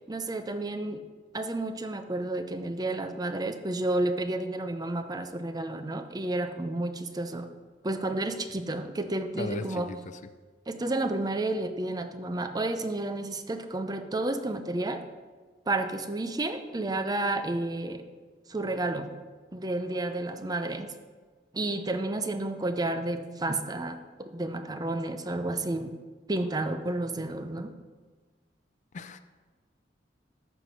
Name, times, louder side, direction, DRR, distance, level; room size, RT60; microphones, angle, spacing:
voice 1, 0.1-1.0 1.3-7.5 7.8-9.9 10.7-15.0 15.7-18.0 18.5-19.1 19.5-20.9 21.5-25.9 26.3-27.7, right 2 dB, 20° right, 8 dB, 0.6 m, -31 dB
voice 2, 9.4-10.0 28.9-29.2, left 3 dB, 45° left, 11 dB, 0.4 m, -36 dB
13.5 x 4.7 x 5.6 m, 1.4 s
head